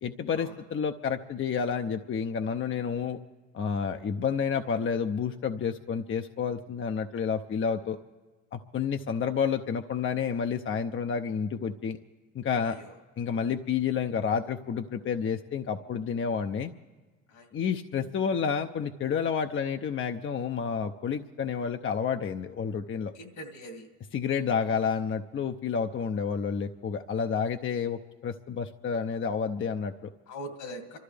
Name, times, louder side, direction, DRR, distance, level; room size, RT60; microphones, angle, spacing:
voice 1, 0.0-3.2 3.5-8.0 8.5-12.0 12.3-12.8 13.2-16.7 17.5-23.1 24.1-30.1, left 6 dB, 40° left, 6 dB, 0.7 m, -30 dB
voice 2, 23.2-23.9 30.3-31.0, equal, 70° left, 6 dB, 2.2 m, -42 dB
27.5 x 13.0 x 3.4 m, 1.3 s
supercardioid pair, 65°, 32 cm